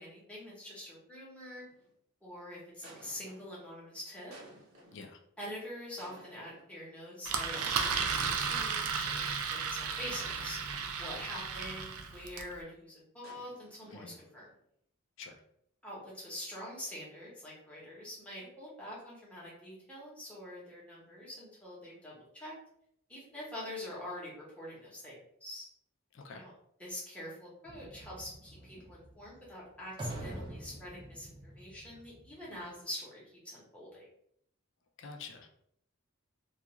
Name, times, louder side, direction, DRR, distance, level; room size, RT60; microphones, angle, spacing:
voice 1, 0.0-1.6 2.2-4.3 5.4-10.7 11.0-14.5 15.8-22.5 23.1-25.7 26.3-26.5 26.8-34.0, left 1 dB, 5° left, -6 dB, 0.8 m, -45 dB
sound 1, 1.6-1.9 2.8-3.6 4.3-5.1 6.0-6.7 7.5-9.2 10.2-11.4 13.2-14.5, right 1 dB, 75° right, 0.9 m, -54 dB
Engine, 7.2-12.5, right 6 dB, 90° right, 0.4 m, -34 dB
voice 2, 26.1-26.5 35.0-35.5, left 4 dB, 60° left, 4 dB, 0.4 m, -47 dB
sound 2, 27.7-32.7, right 1 dB, 20° right, 0.4 m, -46 dB
2.4 x 2.3 x 2.9 m, 0.70 s
head